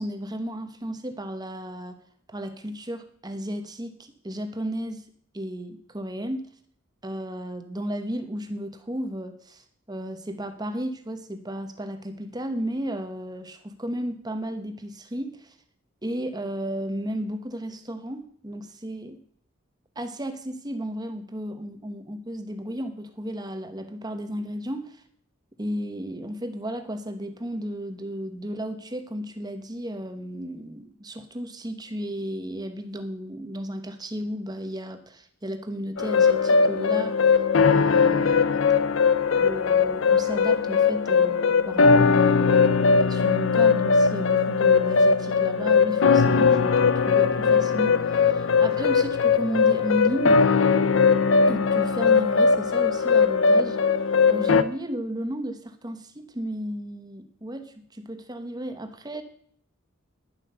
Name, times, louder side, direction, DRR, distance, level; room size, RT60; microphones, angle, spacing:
voice 1, 0.0-2.0 2.3-4.0 4.2-5.0 5.3-6.5 7.0-15.5 16.0-19.2 20.0-25.0 25.6-37.2 37.6-38.6 39.3-50.5 51.5-53.8 54.3-59.2, equal, 20° right, 8 dB, 1.1 m, -33 dB
sound 1, 36.0-54.6, left 5 dB, 65° left, 0.6 m, -20 dB
11.0 x 7.7 x 6.8 m, 0.62 s
head